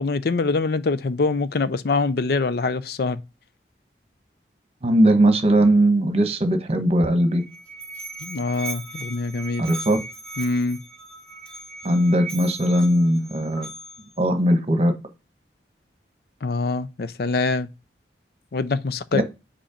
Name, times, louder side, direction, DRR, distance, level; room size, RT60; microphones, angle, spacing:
voice 1, 0.0-3.2 8.2-9.6 10.4-10.8 16.4-17.7 18.5-19.2, left 3 dB, 55° left, 0.5 m, -24 dB
voice 2, 4.8-7.4 9.6-10.0 11.8-13.7 14.2-14.9 19.1-19.2, right 1 dB, 35° right, 1.1 m, -19 dB
Musical instrument, 7.2-14.2, right 3 dB, 5° left, 1.1 m, -38 dB
5.1 x 4.3 x 5.0 m
head